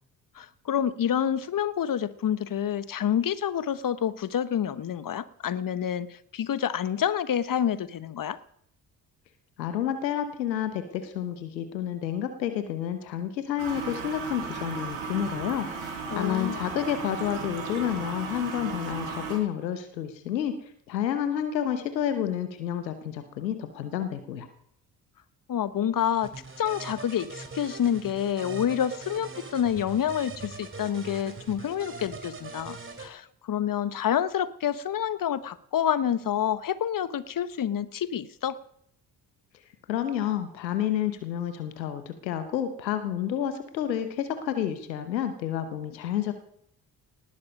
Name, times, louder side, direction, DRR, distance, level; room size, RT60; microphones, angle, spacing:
voice 1, 0.3-8.4 16.1-16.6 25.5-38.6, left 9 dB, 40° left, 16 dB, 1.1 m, -28 dB
voice 2, 9.6-20.5 20.9-24.5 39.9-46.3, left 10 dB, 85° left, 9 dB, 1.0 m, -30 dB
Toilet flush, 13.6-19.4, right 4 dB, 70° right, 4.7 m, -35 dB
sound 1, 26.2-33.1, right 4 dB, 25° right, 3.2 m, -42 dB
19.0 x 11.5 x 5.2 m, 0.70 s
figure-of-eight pair, 45°, 50 cm